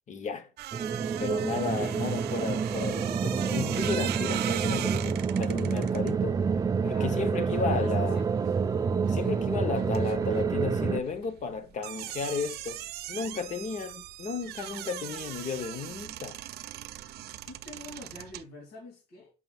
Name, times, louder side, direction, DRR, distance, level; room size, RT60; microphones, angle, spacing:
voice 1, 0.1-0.5 1.2-6.4 6.8-8.2 9.1-16.4, left 5 dB, 45° left, 1.1 m, -33 dB
sound 1, 0.6-8.7 8.9-18.4, right 13 dB, 70° right, 0.6 m, -40 dB
sound 2, 0.7-11.0, right 6 dB, 20° right, 0.3 m, -28 dB
voice 2, 1.8-2.3 6.8-8.6 9.0-9.6 17.4-19.3, left 1 dB, 70° left, 3.0 m, -46 dB
7.5 x 5.8 x 2.4 m
cardioid pair, 110°, 17 cm